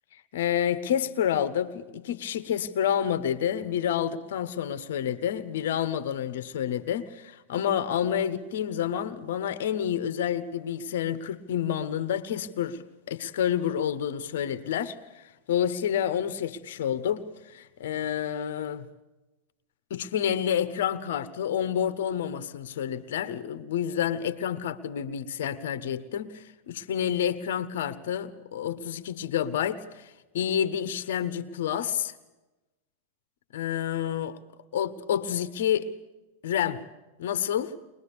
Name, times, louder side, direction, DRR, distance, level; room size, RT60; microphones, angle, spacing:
voice 1, 0.3-14.9 15.5-17.2 17.5-18.9 19.9-30.0 30.3-32.1 33.5-34.3 34.7-35.9 36.4-36.8 37.2-37.7, left 9 dB, 55° left, 1.2 m, -29 dB
22.5 x 21.0 x 6.9 m
figure-of-eight pair, 90°, 0 cm